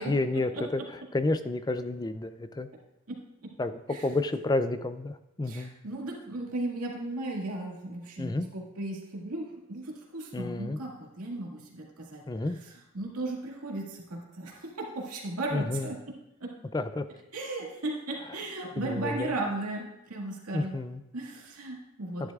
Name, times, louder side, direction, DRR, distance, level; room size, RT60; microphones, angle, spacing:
voice 1, 0.1-2.7 3.6-5.7 8.2-8.5 10.3-10.8 12.3-12.6 15.5-15.9 16.7-17.0 18.2-18.4 18.8-19.4 20.5-21.0 22.2-22.3, left 2 dB, 20° left, 11 dB, 0.3 m, -30 dB
voice 2, 3.1-3.5 3.9-4.0 5.5-12.2 12.9-15.9 16.4-16.5 17.3-20.7 21.1-22.3, right 2 dB, 90° right, -2 dB, 2.1 m, -36 dB
11.0 x 10.5 x 2.4 m, 0.91 s
head